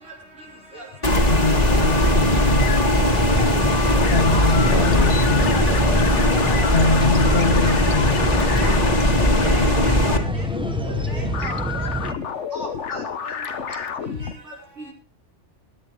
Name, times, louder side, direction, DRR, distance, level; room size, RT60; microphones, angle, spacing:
voice 1, 0.7-2.0 2.7-4.5 5.1-7.1 8.0-9.3, right 3 dB, 50° right, 2.8 m, -42 dB
sound 1, 1.0-10.2, left 1 dB, 35° left, 2.0 m, -19 dB
sound 2, 1.1-14.3, left 7 dB, 80° left, 1.4 m, -30 dB
voice 2, 1.3-2.8 4.1-5.5 6.3-6.4 6.7-8.2, left 4 dB, 60° left, 1.4 m, -23 dB
sound 3, 1.5-12.1, right 1 dB, 5° right, 1.0 m, -27 dB
voice 3, 2.7-3.1 3.3-3.5 3.8-3.9 4.3-4.8 5.1-5.8 7.6-7.7 8.5-8.8 9.4-9.6 10.1-10.2 10.8-11.9 12.5-13.0 13.7-13.8, equal, 85° right, 5.9 m, -35 dB
21.5 x 9.4 x 3.4 m
omnidirectional pair, 1.2 m